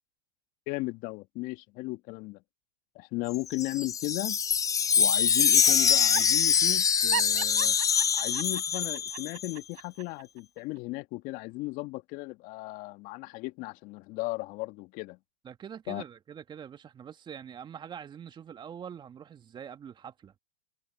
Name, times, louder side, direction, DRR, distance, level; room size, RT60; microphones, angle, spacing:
voice 1, 0.7-2.4 3.0-4.4 5.0-7.7 8.1-15.2 15.9-16.0, left 22 dB, 45° left, 1.8 m, -36 dB
Wind chime, 3.3-9.5, left 7 dB, 15° left, 0.6 m, -24 dB
Laughter, 5.6-6.3 7.1-10.2 10.6-10.7, right 21 dB, 45° right, 3.8 m, -36 dB
voice 2, 15.4-20.3, right 8 dB, 25° right, 2.0 m, -44 dB
hypercardioid pair, 105°, 19 cm